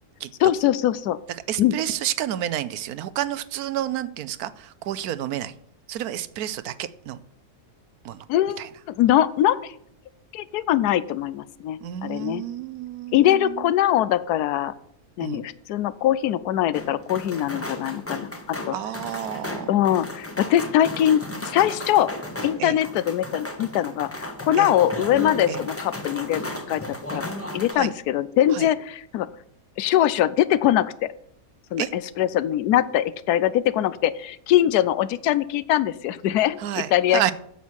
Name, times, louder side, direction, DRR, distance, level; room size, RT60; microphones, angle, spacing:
voice 1, 0.4-1.2 1.6-1.7 8.3-8.6 8.9-9.7 10.3-12.4 13.1-14.7 15.2-18.8 19.7-22.1 22.4-26.8 27.1-27.2 27.5-29.3 29.8-31.1 31.7-37.3, left 12 dB, 85° left, 17 dB, 1.1 m, -22 dB
voice 2, 1.3-5.5 5.9-7.2 8.0-8.3 8.6-8.7 11.8-13.7 15.2-15.4 18.7-19.8 22.6-22.8 24.6-24.8 25.5-25.6 27.7-27.9 28.5-28.7 31.8-31.9 36.6-37.3, right 11 dB, 75° right, 15 dB, 1.1 m, -30 dB
sound 1, 16.7-27.7, left 1 dB, 10° left, 0.9 m, -34 dB
8.3 x 7.2 x 6.3 m, 0.69 s
omnidirectional pair, 1.6 m